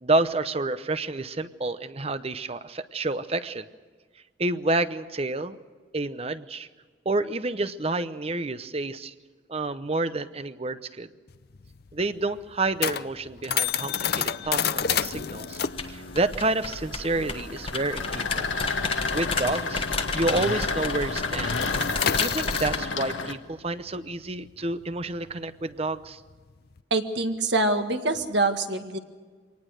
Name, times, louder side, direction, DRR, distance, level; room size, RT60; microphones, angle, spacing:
voice 1, 0.0-3.7 4.4-5.6 5.9-6.7 7.0-9.1 9.5-11.1 11.9-15.6 15.9-18.5 19.1-19.8 20.1-21.6 22.2-26.2, right 2 dB, 30° right, 12 dB, 0.8 m, -29 dB
sound 1, 11.3-20.3 20.5-20.8 21.1-26.8, left 8 dB, 55° left, 0.6 m, -31 dB
sound 2, 13.7-23.3, left 4 dB, 85° left, 1.5 m, -32 dB
sound 3, 15.6-22.8, left 4 dB, 30° left, 1.3 m, -33 dB
voice 2, 26.9-29.0, right 2 dB, 65° right, 6 dB, 1.7 m, -25 dB
24.5 x 19.0 x 6.4 m, 1.5 s
head